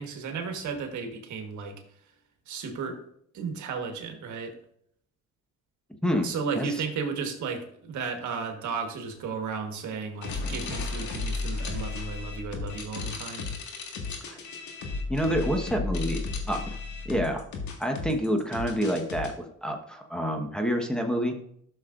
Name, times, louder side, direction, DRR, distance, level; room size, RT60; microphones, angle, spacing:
voice 1, 0.0-1.8 2.5-3.0 3.3-4.5 6.2-13.5, right 5 dB, 75° right, 5 dB, 1.5 m, -34 dB
sound 1, 10.2-19.3, left 3 dB, 70° left, 1.9 m, -34 dB
voice 2, 15.1-16.2 16.5-16.8 17.0-17.5 17.8-21.4, equal, 5° left, 2 dB, 1.2 m, -28 dB
12.5 x 6.5 x 2.6 m, 0.68 s
cardioid pair, 90°, 30 cm